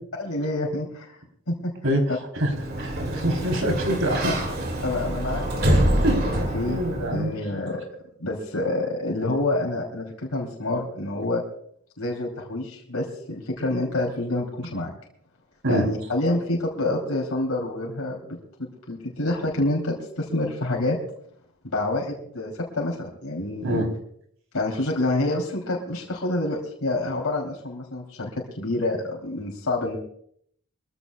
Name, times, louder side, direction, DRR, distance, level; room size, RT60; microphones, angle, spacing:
voice 1, 0.2-1.2 1.5-1.7 2.1-2.2 3.1-3.2 4.2-4.3 4.8-6.8 7.1-7.8 8.2-11.4 12.0-14.9 15.7-21.0 21.6-23.8 24.5-30.0, left 2 dB, 85° left, -2 dB, 3.1 m, -28 dB
Sliding door, 2.4-7.3, right 1 dB, 45° right, 2.3 m, -25 dB
voice 2, 2.8-4.3 6.0-6.2 6.7-7.3 15.6-15.9 23.6-23.9, right 1 dB, 65° right, 3 dB, 3.5 m, -24 dB
24.5 x 14.5 x 2.3 m, 0.66 s
head